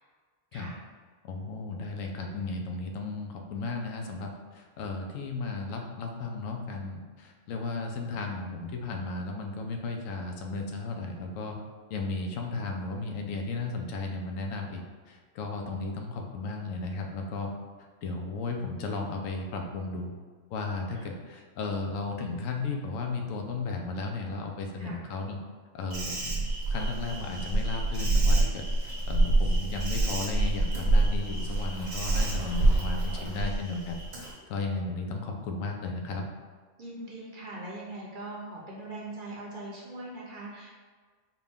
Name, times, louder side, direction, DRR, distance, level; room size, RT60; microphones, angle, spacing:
voice 1, 1.2-11.6 11.9-14.8 15.1-17.5 18.0-20.1 20.5-25.4 25.7-36.3, left 3 dB, 85° left, 2 dB, 1.0 m, -35 dB
Insect, 25.9-34.3, right 2 dB, 75° right, 1.4 m, -27 dB
voice 2, 36.8-40.8, right 2 dB, 45° right, -5 dB, 0.8 m, -41 dB
4.6 x 2.3 x 3.4 m, 1.5 s
omnidirectional pair, 1.3 m